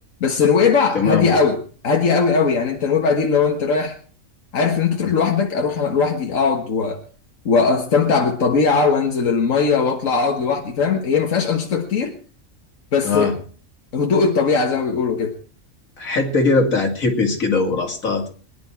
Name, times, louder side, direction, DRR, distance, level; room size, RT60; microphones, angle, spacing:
voice 1, 0.2-1.6 1.8-4.0 4.5-7.0 7.5-12.1 12.9-13.4 13.9-15.3, left 5 dB, 75° left, 2 dB, 1.9 m, -19 dB
voice 2, 0.9-1.3 13.0-13.3 16.0-18.4, left 3 dB, 90° left, 4 dB, 2.9 m, -20 dB
23.5 x 11.0 x 4.5 m, 0.40 s
omnidirectional pair, 1.4 m